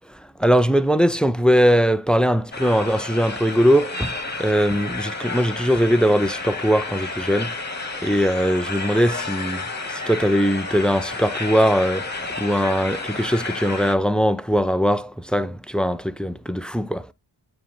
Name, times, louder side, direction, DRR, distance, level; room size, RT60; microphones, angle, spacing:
voice 1, 0.4-7.5 8.0-9.6 9.9-12.1 12.4-17.1, equal, ahead, 0.5 m, -20 dB
sound 1, 2.5-13.9, left 3 dB, 20° left, 1.5 m, -31 dB
8.6 x 4.6 x 3.8 m
cardioid pair, 75°, 46 cm